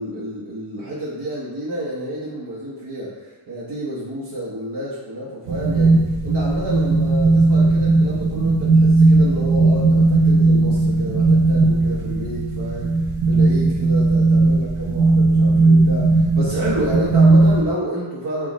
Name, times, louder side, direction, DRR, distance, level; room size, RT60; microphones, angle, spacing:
voice 1, 0.0-18.5, equal, 55° right, -7 dB, 1.0 m, -29 dB
sound 1, 5.5-17.6, right 3 dB, 85° right, 0.7 m, -16 dB
6.1 x 2.5 x 3.0 m, 1.2 s
wide cardioid pair, 90°, 50 cm